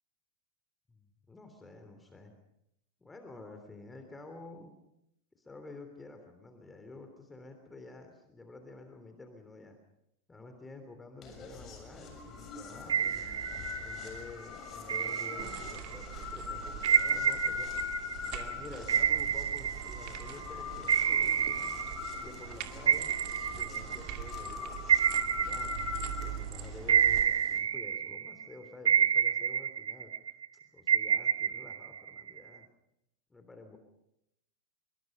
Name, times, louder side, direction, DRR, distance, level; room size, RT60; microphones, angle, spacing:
voice 1, 0.9-2.3 3.0-4.8 5.3-9.8 10.3-13.3 13.8-17.7 18.2-21.7 22.1-23.1 23.5-24.9 25.2-25.8 26.2-30.1 30.7-32.7 33.3-33.8, left 3 dB, 10° left, 6 dB, 3.2 m, -50 dB
sound 1, 11.2-27.6, left 7 dB, 30° left, 6.9 m, -42 dB
sound 2, 12.9-14.2 14.9-16.0 16.8-20.4 20.9-22.5 22.9-26.4 26.9-28.4 28.9-30.5 30.9-32.6, right 8 dB, 65° right, 0.8 m, -29 dB
sound 3, 15.4-27.2, right 11 dB, 40° right, 2.3 m, -44 dB
26.0 x 24.0 x 5.4 m, 0.79 s
figure-of-eight pair, 90°, 0 cm